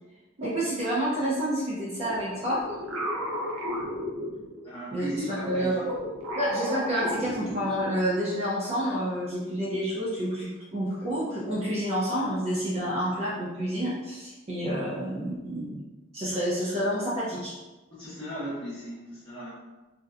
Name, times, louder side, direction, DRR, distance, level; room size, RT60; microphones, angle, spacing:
voice 1, 0.4-2.7 4.9-5.8 6.4-15.8 16.1-17.5, equal, 30° right, -7 dB, 0.4 m, -29 dB
sound 1, 2.0-4.8 5.4-8.1, equal, 85° right, 0.5 m, -34 dB
voice 2, 4.6-5.9 17.9-19.5, equal, 25° left, -12 dB, 0.9 m, -36 dB
2.7 x 2.1 x 2.3 m, 1.1 s
head